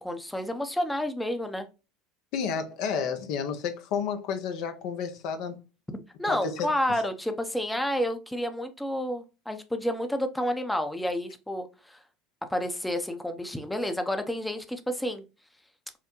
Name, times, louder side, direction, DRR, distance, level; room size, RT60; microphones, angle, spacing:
voice 1, 0.0-1.7 6.2-12.0 12.5-15.2, equal, 5° left, 0.6 m, -30 dB
voice 2, 2.3-5.6 6.2-6.7, left 6 dB, 60° left, 0.6 m, -31 dB
5.6 x 2.1 x 3.0 m
hypercardioid pair, 80°, 0 cm